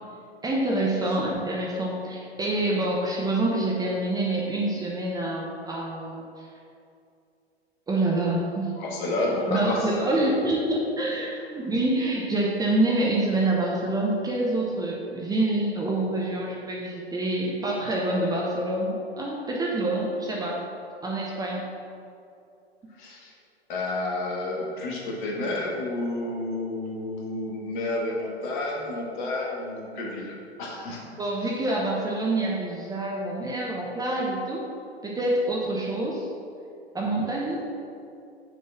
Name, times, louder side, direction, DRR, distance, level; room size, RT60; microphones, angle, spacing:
voice 1, 0.4-6.5 7.9-8.7 9.5-20.6 21.0-21.7 31.2-34.7 35.0-36.3 36.9-37.6, right 2 dB, 10° right, -3 dB, 0.7 m, -26 dB
voice 2, 8.8-10.3 23.0-23.3 23.7-31.1, left 2 dB, 50° left, -2 dB, 1.7 m, -30 dB
6.6 x 4.3 x 6.1 m, 2.5 s
figure-of-eight pair, 100°, 33 cm